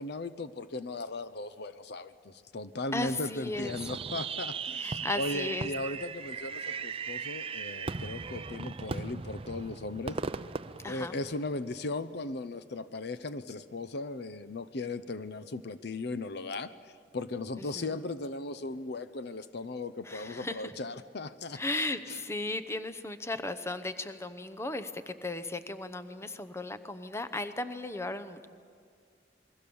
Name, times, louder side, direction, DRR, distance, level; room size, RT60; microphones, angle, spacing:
voice 1, 0.0-10.2 10.9-16.7 17.1-21.6 22.1-22.2, left 2 dB, 60° left, 13 dB, 0.7 m, -37 dB
voice 2, 2.9-3.8 4.7-5.7 10.8-11.2 17.6-18.0 20.1-20.7 21.5-28.5, left 2 dB, 15° left, 11 dB, 0.8 m, -36 dB
Fireworks, 3.6-11.7, right 5 dB, 30° right, 0.5 m, -38 dB
28.0 x 22.0 x 7.0 m, 2.1 s
head